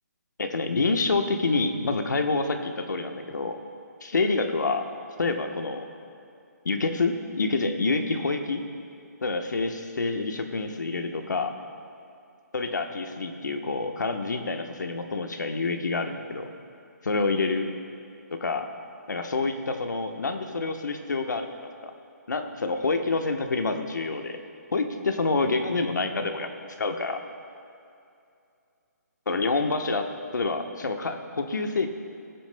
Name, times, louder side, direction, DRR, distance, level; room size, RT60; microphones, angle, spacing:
voice 1, 0.4-3.6 4.0-4.8 5.2-5.9 6.6-8.6 9.2-11.5 12.5-16.5 17.0-17.7 18.3-18.7 19.1-21.6 21.8-21.9 22.3-24.4 24.7-26.5 26.8-27.2 29.3-31.9, left 3 dB, 90° left, 5 dB, 1.1 m, -27 dB
20.0 x 8.9 x 2.2 m, 2.5 s
hypercardioid pair, 165°, 10 cm